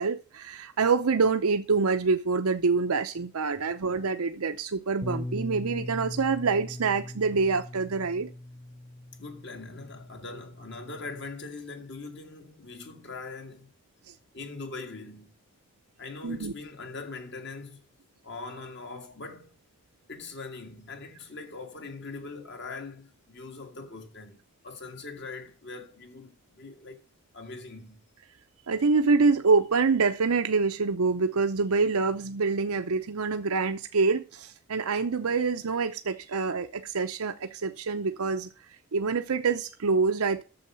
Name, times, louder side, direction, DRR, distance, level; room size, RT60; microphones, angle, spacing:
voice 1, 0.0-8.3 16.2-16.5 28.7-38.5 38.9-40.4, right 4 dB, 90° right, 0.7 m, -26 dB
Bass guitar, 5.0-11.3, left 1 dB, 10° left, 0.4 m, -40 dB
voice 2, 9.2-13.7 14.3-15.4 16.0-17.8 18.2-19.6 20.1-27.0 27.3-28.0, left 3 dB, 55° left, 1.8 m, -42 dB
8.7 x 7.1 x 5.9 m
head